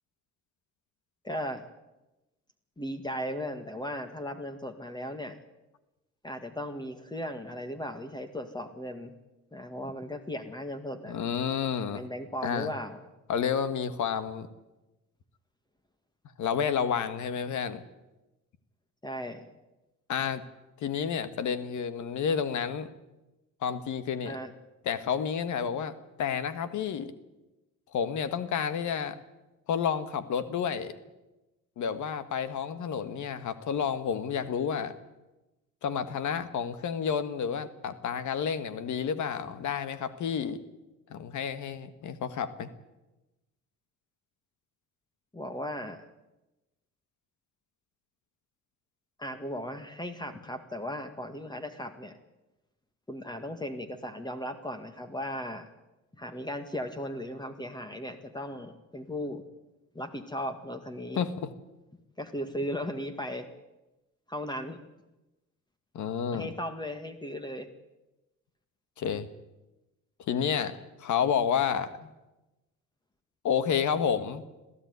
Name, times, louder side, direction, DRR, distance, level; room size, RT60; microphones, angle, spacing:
voice 1, 1.2-1.7 2.8-5.4 6.2-9.1 9.5-11.2 11.9-13.0 19.0-19.5 24.3-24.5 45.3-46.0 49.2-52.2 53.1-55.7 56.2-59.4 59.9-61.3 62.2-63.5 64.3-64.8 66.3-67.7 70.3-70.6, equal, 15° left, 8 dB, 1.9 m, -37 dB
voice 2, 11.1-12.1 12.4-12.7 13.3-14.5 16.4-17.8 20.1-20.4 20.8-22.9 23.6-24.4 24.8-25.9 26.2-27.1 27.9-29.2 29.7-30.9 31.8-34.9 35.8-40.6 41.1-42.7 61.2-61.5 65.9-66.5 69.0-69.3 70.3-72.0 73.4-74.4, left 7 dB, 75° left, 12 dB, 1.6 m, -30 dB
22.0 x 14.5 x 9.5 m, 1.0 s
cardioid pair, 90°, 30 cm